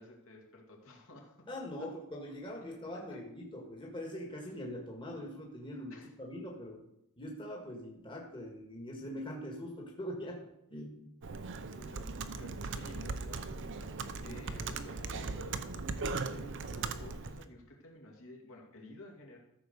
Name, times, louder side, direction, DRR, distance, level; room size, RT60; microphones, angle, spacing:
voice 1, 0.0-1.5 2.9-3.2 4.4-4.6 5.9-6.1 11.7-13.9 14.2-19.4, left 2 dB, 65° left, -1 dB, 2.5 m, -53 dB
voice 2, 1.5-6.8 7.2-10.4 10.7-11.1 14.2-14.4, equal, 20° left, 0 dB, 1.6 m, -43 dB
Computer keyboard, 11.2-17.4, right 4 dB, 55° right, 0.7 m, -39 dB
14.0 x 4.7 x 6.7 m, 0.80 s
head